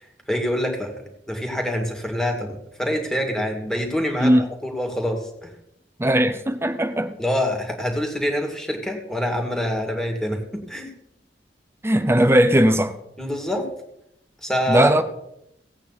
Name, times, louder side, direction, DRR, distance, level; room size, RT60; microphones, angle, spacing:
voice 1, 0.3-0.9 1.3-4.3 4.6-5.5 7.2-10.9 13.2-13.7 14.4-15.0, equal, 5° left, 2.4 m, -26 dB
voice 2, 6.0-7.2 11.8-13.0 14.7-15.0, right 1 dB, 15° right, 0.7 m, -18 dB
17.5 x 8.6 x 4.2 m
head